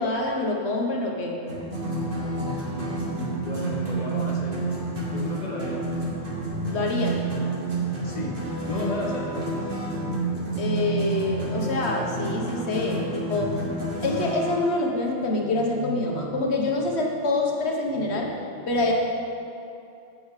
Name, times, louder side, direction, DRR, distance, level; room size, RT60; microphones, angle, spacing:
voice 1, 0.0-1.4 6.7-7.3 7.8-7.9 10.6-13.5 14.0-18.3 18.7-18.9, left 2 dB, 85° left, 0 dB, 1.4 m, -26 dB
sound 1, 1.5-14.6, right 2 dB, 55° right, 1.8 m, -29 dB
voice 2, 2.4-4.6 5.1-5.9 8.0-8.4 8.6-9.7, left 1 dB, 40° left, -2 dB, 1.3 m, -33 dB
15.5 x 6.4 x 3.2 m, 2.7 s
omnidirectional pair, 1.1 m